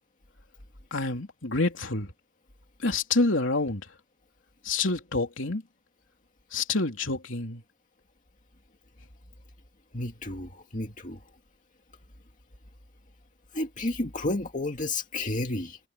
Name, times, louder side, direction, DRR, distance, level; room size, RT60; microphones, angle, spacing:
voice 1, 0.9-2.1 2.8-3.8 4.6-5.6 6.5-7.6, left 3 dB, 70° left, 3.5 m, -27 dB
voice 2, 9.9-11.2 13.5-15.8, left 2 dB, 40° left, 2.2 m, -31 dB
head